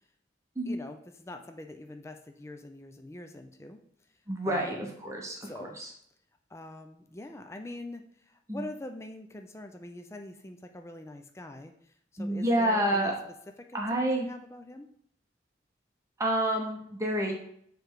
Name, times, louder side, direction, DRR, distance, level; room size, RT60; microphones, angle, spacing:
voice 1, 0.7-3.8 4.4-4.8 5.4-5.8 6.5-13.1 13.6-14.9, left 2 dB, 15° left, 6 dB, 0.4 m, -44 dB
voice 2, 4.3-5.9 8.5-8.6 12.2-13.1 13.7-14.3 16.2-17.3, right 1 dB, 15° right, 0 dB, 0.9 m, -29 dB
6.9 x 3.2 x 4.6 m, 0.67 s
head